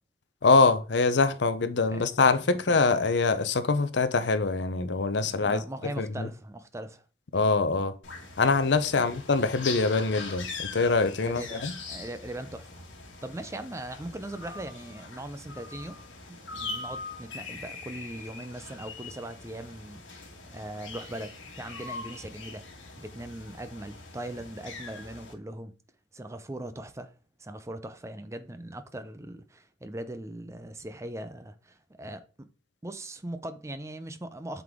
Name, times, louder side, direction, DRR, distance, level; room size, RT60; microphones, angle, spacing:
voice 1, 0.4-5.6 6.0-6.3 7.3-7.9 8.4-11.7, left 4 dB, 65° left, 0.6 m, -24 dB
voice 2, 5.2-7.0 8.9-9.2 11.2-12.8 13.2-16.0 16.3-22.6 23.0-25.7 26.1-32.5 32.8-34.6, right 1 dB, 15° right, 0.5 m, -40 dB
sound 1, 8.0-25.3, left 4 dB, 85° left, 1.6 m, -42 dB
7.8 x 4.0 x 3.5 m
head